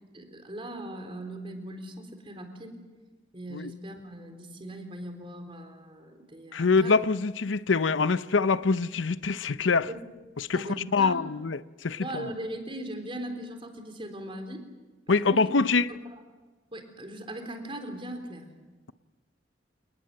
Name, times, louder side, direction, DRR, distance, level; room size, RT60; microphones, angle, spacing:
voice 1, 0.1-2.8 3.3-7.0 9.9-10.0 10.5-11.3 12.0-14.6 15.1-15.4 15.9-16.2 16.7-18.5, right 1 dB, 30° right, 3.9 m, -39 dB
voice 2, 6.5-9.9 10.4-10.7 10.9-12.1 15.1-15.9, left 4 dB, 85° left, 0.7 m, -24 dB
28.5 x 20.0 x 7.7 m
head